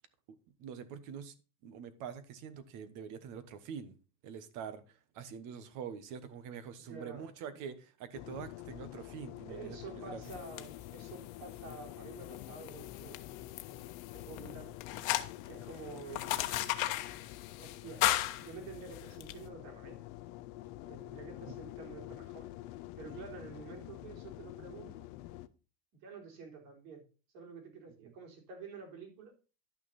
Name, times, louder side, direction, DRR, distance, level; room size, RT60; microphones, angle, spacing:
voice 1, 0.6-1.3 1.6-4.0 4.2-10.3 21.5-21.6 23.4-23.5 28.0-28.1, right 7 dB, 40° right, 1.3 m, -45 dB
voice 2, 6.8-7.7 9.5-13.4 14.1-14.7 15.5-16.4 17.6-18.0 18.4-20.1 20.8-22.5 23.0-25.1 26.0-27.1 27.3-29.3, right 4 dB, 60° right, 4.2 m, -49 dB
sound 1, 8.1-25.5, left 15 dB, 30° left, 0.4 m, -48 dB
sound 2, 10.2-19.4, left 15 dB, 60° left, 1.1 m, -37 dB
11.5 x 6.0 x 4.2 m
supercardioid pair, 155°, 46 cm